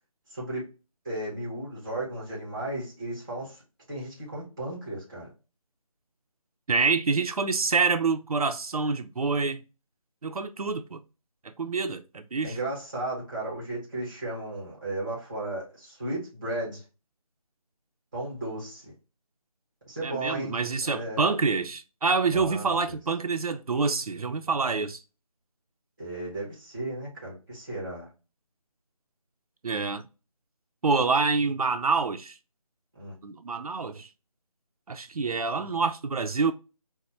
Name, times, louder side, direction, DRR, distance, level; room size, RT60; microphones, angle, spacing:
voice 1, 0.3-0.7 1.0-3.6 3.9-5.3 12.4-16.8 18.1-18.9 19.9-20.5 20.8-21.2 22.3-23.0 26.0-28.1 32.9-33.2, right 1 dB, 5° right, 0.7 m, -35 dB
voice 2, 6.7-9.6 10.2-11.0 11.4-12.6 20.0-25.0 29.6-30.0 30.8-32.4 33.2-34.1 34.9-36.5, right 4 dB, 75° right, 0.5 m, -27 dB
4.2 x 2.1 x 3.1 m
figure-of-eight pair, 170°, 19 cm